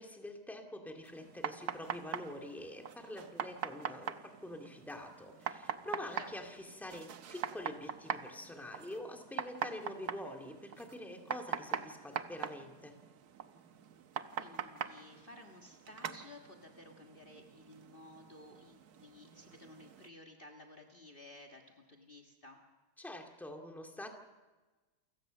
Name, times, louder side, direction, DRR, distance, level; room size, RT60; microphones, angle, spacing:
voice 1, 0.0-12.9 23.0-24.1, left 1 dB, ahead, 3 dB, 2.2 m, -46 dB
sound 1, 1.0-20.1, right 8 dB, 70° right, 1.5 m, -43 dB
voice 2, 14.3-22.6, left 2 dB, 35° left, 4 dB, 1.8 m, -55 dB
29.0 x 16.0 x 6.5 m, 1.2 s
omnidirectional pair, 1.7 m